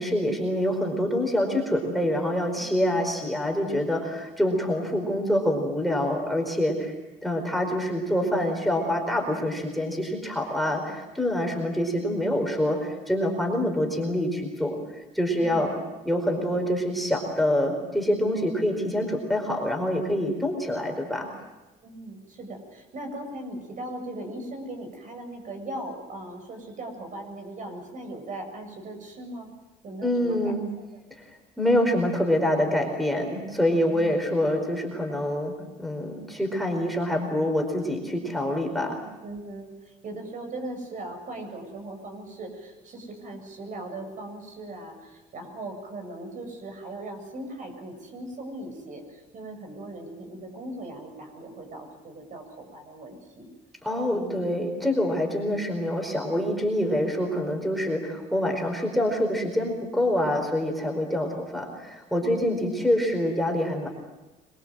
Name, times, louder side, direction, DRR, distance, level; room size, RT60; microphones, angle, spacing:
voice 1, 0.0-6.9 7.2-15.7 16.0-21.3 30.0-30.6 31.6-35.5 35.8-39.0 53.8-63.9, left 1 dB, ahead, 3 dB, 4.8 m, -26 dB
voice 2, 21.8-29.5 29.8-30.8 33.9-34.2 38.7-38.9 39.2-53.5 54.1-54.5 62.2-62.5, right 1 dB, 50° right, 4 dB, 7.7 m, -39 dB
26.0 x 22.0 x 7.8 m, 1.1 s
cardioid pair, 110°, 17 cm